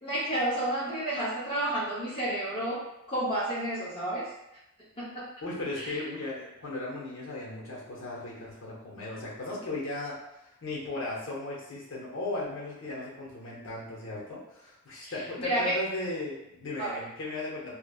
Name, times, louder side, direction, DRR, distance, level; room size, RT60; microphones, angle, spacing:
voice 1, 0.0-2.8 3.1-4.3 5.0-5.2 5.8-5.9 15.0-15.1 15.4-15.7 16.8-17.0, right 1 dB, 25° left, -9 dB, 0.6 m, -30 dB
voice 2, 5.4-17.7, left 2 dB, 65° left, -4 dB, 0.8 m, -37 dB
3.1 x 2.0 x 2.3 m, 0.86 s
head